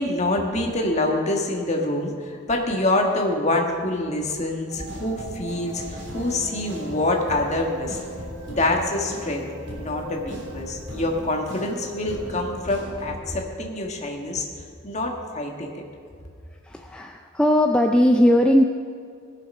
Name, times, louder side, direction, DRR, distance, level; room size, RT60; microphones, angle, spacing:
voice 1, 0.0-8.0 8.5-14.4 14.8-15.8, left 2 dB, 35° left, 1 dB, 1.5 m, -26 dB
sound 1, 4.7-13.2, equal, 55° right, 3.2 m, -37 dB
voice 2, 16.6-18.6, equal, 5° left, 2 dB, 0.4 m, -18 dB
18.0 x 6.8 x 5.3 m, 2.3 s
head